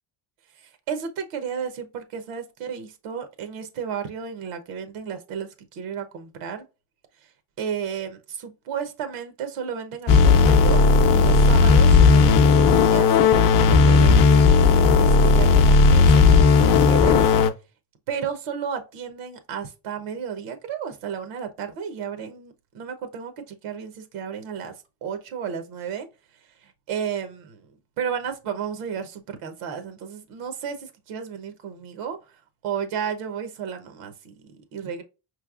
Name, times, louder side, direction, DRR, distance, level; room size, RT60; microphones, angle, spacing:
voice 1, 0.6-6.6 7.2-7.3 7.6-16.4 16.8-17.2 18.1-24.7 25.0-26.1 26.6-27.7 28.0-32.2 32.6-35.0, right 7 dB, 90° right, 1.0 m, -33 dB
sound 1, 10.1-17.5, left 4 dB, 45° left, 0.5 m, -15 dB
5.3 x 3.2 x 2.4 m
cardioid pair, 155°, 49 cm